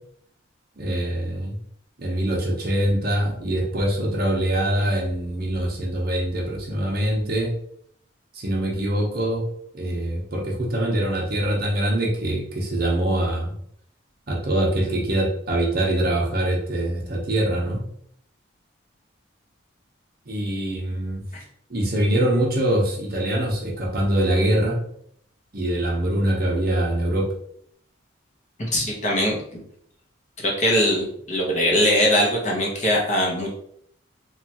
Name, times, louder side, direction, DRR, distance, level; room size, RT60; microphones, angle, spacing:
voice 1, 0.8-1.6 2.0-7.5 8.3-9.4 9.7-13.5 14.3-17.8 20.3-21.2 21.7-24.8 25.5-27.3, right 1 dB, 50° right, -1 dB, 0.7 m, -23 dB
voice 2, 28.6-29.4 30.4-33.5, equal, 35° left, -2 dB, 0.7 m, -21 dB
3.0 x 2.3 x 2.8 m, 0.67 s
head